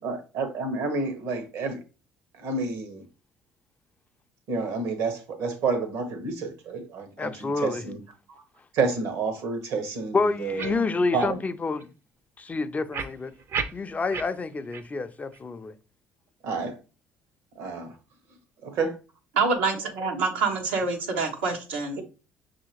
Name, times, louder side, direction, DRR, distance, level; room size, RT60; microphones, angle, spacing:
voice 1, 0.0-1.8 2.3-3.0 4.5-8.0 8.3-8.4 8.7-10.8 11.1-11.4 16.4-16.8 17.6-17.9 18.6-19.0 21.9-22.0, right 4 dB, 70° right, 1.1 m, -29 dB
voice 2, 7.2-7.8 10.1-11.9 12.4-13.3 13.7-15.7, left 3 dB, 25° left, 0.4 m, -28 dB
sound 1, 10.6-10.8 11.2-11.3 11.8-11.9 12.9-14.3 14.7-14.8 15.3-15.4, right 6 dB, 50° right, 0.6 m, -32 dB
voice 3, 19.3-22.0, right 4 dB, 90° right, 1.0 m, -26 dB
6.0 x 2.8 x 2.9 m
hypercardioid pair, 65°, 5 cm